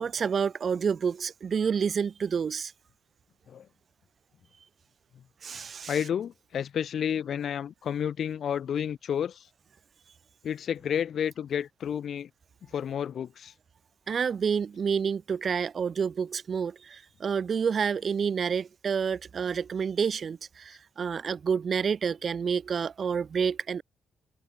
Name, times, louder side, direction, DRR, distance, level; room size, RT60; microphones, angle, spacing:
voice 1, 0.0-2.7 5.4-6.0 14.1-23.8, right 6 dB, 45° right, 1.1 m, -29 dB
voice 2, 5.9-9.5 10.4-12.3 12.7-13.5, left 8 dB, 60° left, 1.9 m, -31 dB
cardioid pair, 90°, 0 cm